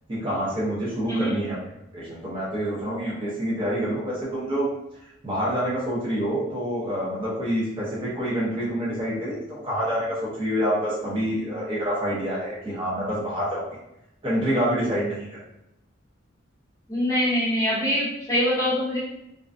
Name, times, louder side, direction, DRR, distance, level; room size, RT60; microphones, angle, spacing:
voice 1, 0.1-1.6 1.9-4.7 5.2-13.6 14.2-15.3, equal, 25° right, -7 dB, 0.6 m, -27 dB
voice 2, 16.9-19.0, equal, 15° left, -8 dB, 0.8 m, -23 dB
2.4 x 2.1 x 2.4 m, 0.85 s
head